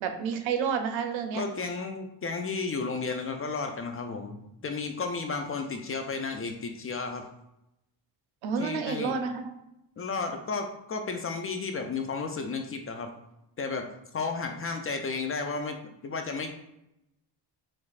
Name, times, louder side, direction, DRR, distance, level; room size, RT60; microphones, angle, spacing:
voice 1, 0.0-1.4 8.4-9.5, right 6 dB, 80° right, 6 dB, 0.7 m, -30 dB
voice 2, 1.3-7.2 8.6-9.2 10.0-13.1 13.6-13.9 14.1-16.5, left 4 dB, 30° left, 4 dB, 0.4 m, -33 dB
4.7 x 3.1 x 2.4 m, 0.86 s
cardioid pair, 105°, 46 cm